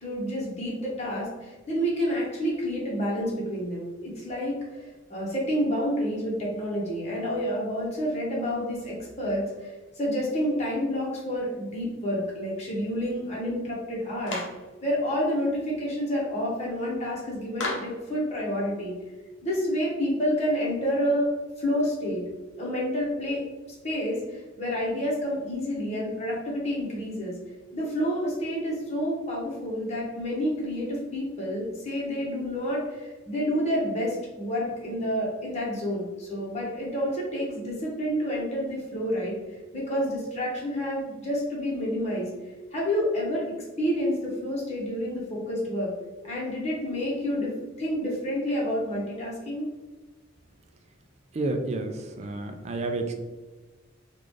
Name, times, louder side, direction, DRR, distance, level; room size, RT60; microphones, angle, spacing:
voice 1, 0.0-14.4 14.8-19.0 19.4-21.3 21.6-22.2 22.6-23.4 23.8-27.4 27.7-39.4 39.7-42.3 42.7-43.4 43.8-45.9 46.2-47.5 47.8-49.7, equal, 35° left, -5 dB, 1.1 m, -29 dB
Clapping, 14.3-14.6 17.6-18.0, left 2 dB, 65° left, 0.8 m, -32 dB
voice 2, 51.3-53.1, right 2 dB, 35° right, 5 dB, 0.3 m, -30 dB
3.9 x 2.4 x 3.1 m, 1.2 s
head